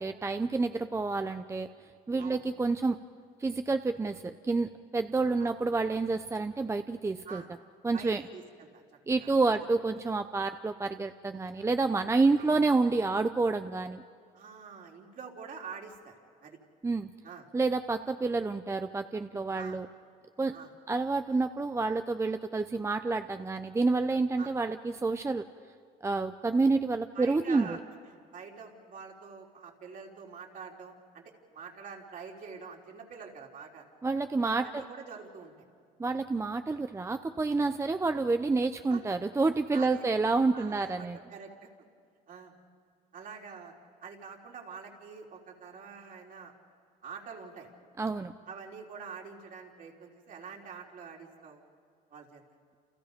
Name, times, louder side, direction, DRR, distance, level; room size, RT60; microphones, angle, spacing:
voice 1, 0.0-1.7 2.1-3.0 3.4-7.4 7.8-8.2 9.1-14.0 16.8-17.1 17.5-19.9 20.4-20.6 20.9-25.4 26.0-27.8 34.0-34.8 36.0-41.2 48.0-48.3, right 3 dB, 15° right, 9 dB, 0.7 m, -29 dB
voice 2, 7.9-8.8 9.2-9.3 12.4-12.5 14.3-16.1 16.4-16.6 17.2-17.5 19.6-19.8 20.5-20.7 24.4-24.5 27.1-27.8 28.1-31.2 31.5-33.9 34.5-35.5 38.9-39.0 39.7-40.0 40.5-41.7 42.3-42.5 43.1-43.7 44.0-46.5 47.0-47.7 48.5-51.6 52.1-52.4, right 6 dB, 55° right, 0 dB, 3.7 m, -46 dB
29.5 x 28.5 x 5.3 m, 2.1 s
cardioid pair, 110°, 17 cm